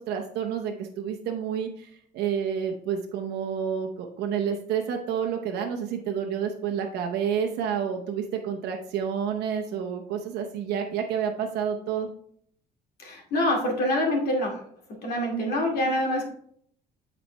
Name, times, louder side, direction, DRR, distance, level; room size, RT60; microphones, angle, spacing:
voice 1, 0.0-12.1 15.3-15.6, right 7 dB, 80° right, 3 dB, 0.8 m, -29 dB
voice 2, 13.0-14.6 14.9-16.3, left 1 dB, 65° left, 0 dB, 2.3 m, -26 dB
8.0 x 4.3 x 3.2 m, 0.64 s
cardioid pair, 110°, 17 cm